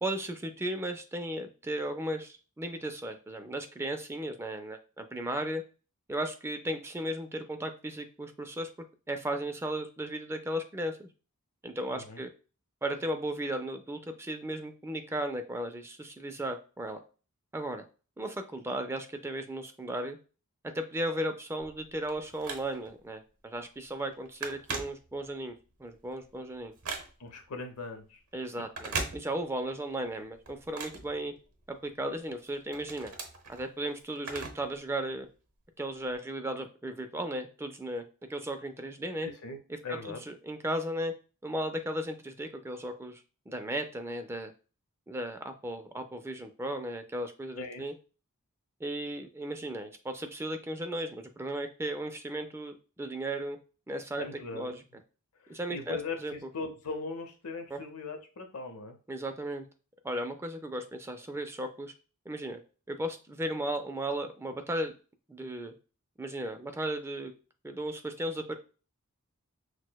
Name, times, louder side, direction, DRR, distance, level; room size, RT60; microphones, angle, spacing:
voice 1, 0.0-5.6 6.1-8.7 9.1-11.1 11.6-12.3 12.8-17.0 17.5-17.8 18.2-20.2 20.6-25.5 25.8-26.7 28.3-31.3 31.7-33.1 33.5-35.3 35.8-38.0 38.3-39.3 39.9-41.1 41.4-43.2 43.5-44.5 45.1-47.9 48.8-53.6 53.9-54.3 54.5-54.8 55.5-56.3 57.7-57.8 59.1-59.7 60.0-61.9 62.3-62.6 62.9-64.9 65.3-65.7 66.2-67.3 67.6-68.5, right 1 dB, 10° right, 7 dB, 0.4 m, -35 dB
voice 2, 11.9-12.2 27.2-28.2 39.2-39.6 39.8-40.2 47.6-47.8 54.2-54.7 55.4-59.0, left 4 dB, 85° left, 5 dB, 0.8 m, -40 dB
Telephone, 21.6-23.0 23.5-23.7 24.0-25.5 25.9-27.4 28.6-29.7 30.0-31.8 32.3-34.8 35.1-35.2 36.0-36.1, right 4 dB, 75° right, 0.9 m, -40 dB
6.2 x 2.1 x 2.2 m, 0.35 s
head